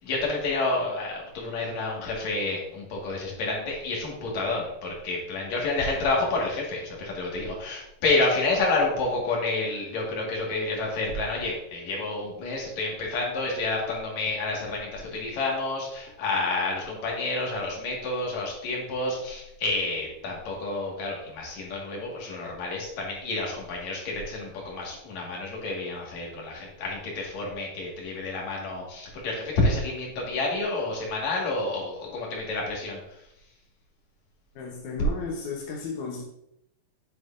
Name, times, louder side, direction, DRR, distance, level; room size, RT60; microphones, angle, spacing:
voice 1, 0.0-33.0, left 2 dB, 55° left, -2 dB, 2.8 m, -29 dB
voice 2, 34.6-36.2, left 4 dB, 70° left, -1 dB, 1.9 m, -34 dB
7.8 x 7.7 x 2.6 m, 0.78 s
omnidirectional pair, 4.5 m